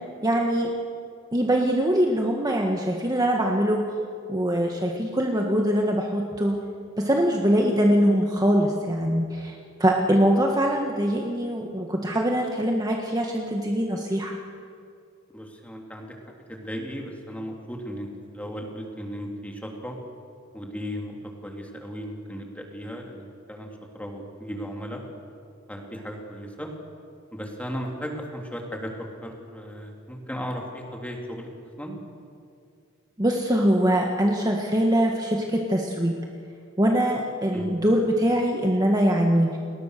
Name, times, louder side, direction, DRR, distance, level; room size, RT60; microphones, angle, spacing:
voice 1, 0.2-0.7 1.3-3.8 4.3-6.6 7.0-9.5 9.8-14.4 33.2-36.2 36.8-39.6, equal, 20° right, 1 dB, 1.7 m, -23 dB
voice 2, 15.3-16.2 16.5-20.0 20.5-23.7 23.9-25.0 25.7-26.7 27.3-31.5 31.8-32.0 37.5-37.7, equal, 5° left, 0 dB, 3.4 m, -36 dB
30.0 x 20.5 x 6.8 m, 2.4 s
head